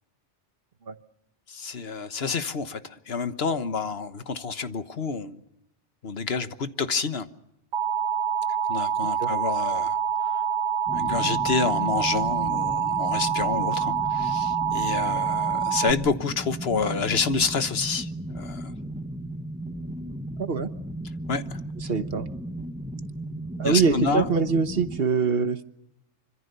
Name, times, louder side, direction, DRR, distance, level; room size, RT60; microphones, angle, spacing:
voice 1, 1.5-5.4 6.0-7.3 8.7-10.0 10.9-18.7 21.3-21.4 23.6-24.2, left 5 dB, 60° left, 1.5 m, -28 dB
Alarm, 7.7-15.9, right 7 dB, 80° right, 1.5 m, -26 dB
sound 1, 10.9-25.0, right 1 dB, 5° right, 1.0 m, -35 dB
voice 2, 20.4-20.7 21.8-22.3 23.6-25.6, right 5 dB, 55° right, 1.4 m, -24 dB
26.0 x 25.0 x 6.8 m
omnidirectional pair, 1.2 m